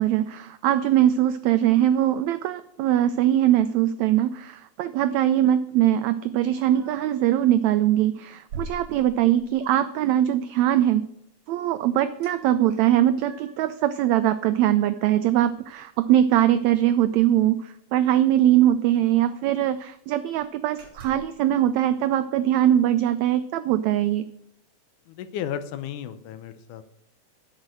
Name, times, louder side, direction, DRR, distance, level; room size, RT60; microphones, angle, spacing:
voice 1, 0.0-11.1 11.5-24.3, right 12 dB, 85° right, 12 dB, 1.6 m, -21 dB
sound 1, 6.5-7.2 7.7-7.9 8.5-9.6 12.2-12.4 12.7-13.7 14.2-16.0 16.3-16.4 16.7-16.9 18.0-18.1 18.4-18.5 18.9-19.8 20.2-20.4 20.8-21.4, right 3 dB, 50° right, 3.1 m, -44 dB
voice 2, 25.1-26.9, left 9 dB, 80° left, 11 dB, 2.3 m, -34 dB
10.5 x 6.3 x 7.6 m, 0.75 s
omnidirectional pair, 3.7 m